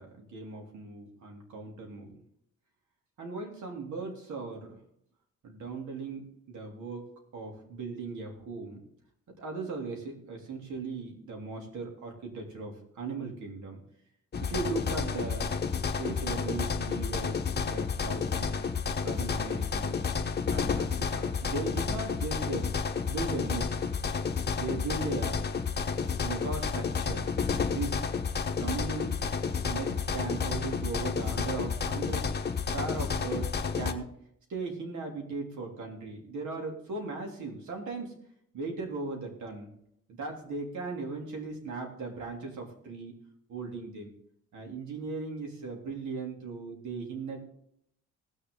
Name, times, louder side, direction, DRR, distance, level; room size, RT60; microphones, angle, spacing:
voice 1, 0.0-2.2 3.2-4.8 5.4-7.1 7.3-8.8 9.4-13.8 14.4-15.5 16.0-18.6 19.0-20.0 20.5-22.7 23.1-23.7 24.5-25.5 26.2-27.4 27.6-28.0 28.6-29.2 29.7-32.3 32.7-34.1 34.5-38.1 38.5-39.7 40.1-43.2 43.5-44.1 44.5-47.4, right 4 dB, 75° right, 1 dB, 3.1 m, -38 dB
sound 1, 14.3-33.9, left 5 dB, 35° left, 1.1 m, -31 dB
18.5 x 6.8 x 3.8 m, 0.71 s
cardioid pair, 90°, 30 cm